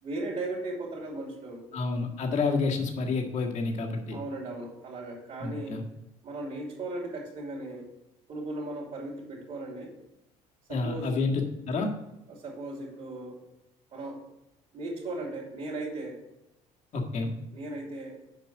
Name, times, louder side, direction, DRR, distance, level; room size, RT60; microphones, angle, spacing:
voice 1, 0.0-1.7 4.1-5.8 6.2-7.9 8.3-9.9 10.7-11.2 12.3-13.4 13.9-14.2 14.7-16.2 17.5-18.2, right 2 dB, 45° right, -5 dB, 2.8 m, -37 dB
voice 2, 1.7-4.2 5.4-5.8 10.7-11.9 16.9-17.3, left 4 dB, 55° left, 1 dB, 1.8 m, -29 dB
7.4 x 5.4 x 6.5 m, 0.89 s
supercardioid pair, 90°, 14 cm